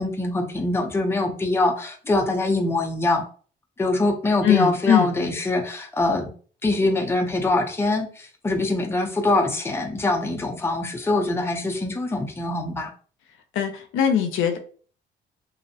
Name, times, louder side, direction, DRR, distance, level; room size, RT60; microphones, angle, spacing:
voice 1, 0.0-3.2 3.8-6.3 6.6-12.9, left 2 dB, 10° left, 2 dB, 0.5 m, -23 dB
voice 2, 4.4-5.1 13.5-14.6, left 9 dB, 85° left, 7 dB, 0.5 m, -21 dB
2.5 x 2.0 x 2.7 m, 0.42 s
cardioid pair, 90°, 20 cm